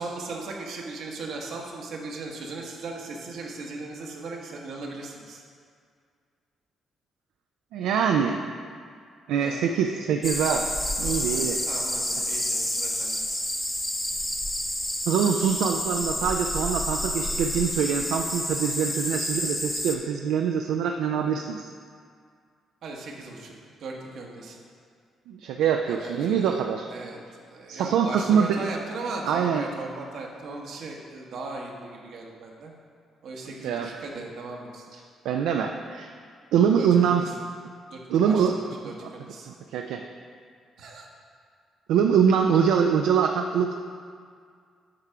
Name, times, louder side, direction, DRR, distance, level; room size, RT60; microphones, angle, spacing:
voice 1, 0.0-5.4 9.4-9.9 11.0-13.2 22.8-23.5 23.8-24.6 25.9-26.6 26.9-27.2 27.5-32.7 33.2-34.8 36.8-37.3 37.9-38.0 38.2-39.5 40.8-41.1, right 3 dB, 70° right, 0 dB, 1.1 m, -38 dB
voice 2, 7.7-8.4 9.3-10.7 11.0-11.6 15.1-21.7 25.3-26.9 27.7-28.7 29.3-29.7 33.6-33.9 34.9-35.0 35.3-36.1 36.5-37.3 38.1-38.5 39.0-39.1 39.5-40.0 41.9-43.8, right 7 dB, 90° right, 4 dB, 0.3 m, -24 dB
sound 1, 10.2-20.0, left 1 dB, 10° left, 0.6 m, -29 dB
8.5 x 3.6 x 5.6 m, 2.1 s
cardioid pair, 90°, 0 cm